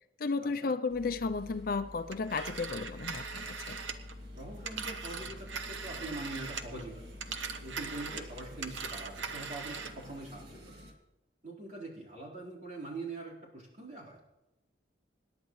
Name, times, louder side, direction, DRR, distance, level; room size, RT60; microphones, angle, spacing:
voice 1, 0.2-3.8, left 4 dB, 50° left, 9 dB, 0.5 m, -33 dB
sound 1, 0.9-10.9, left 1 dB, 55° right, 2.0 m, -49 dB
Telephone, 2.1-6.8 7.1-10.0, right 5 dB, 75° right, 1.0 m, -40 dB
voice 2, 4.4-7.0 7.6-10.7 11.4-14.2, right 2 dB, 40° right, -5 dB, 4.3 m, -43 dB
26.5 x 10.5 x 3.2 m, 0.99 s
head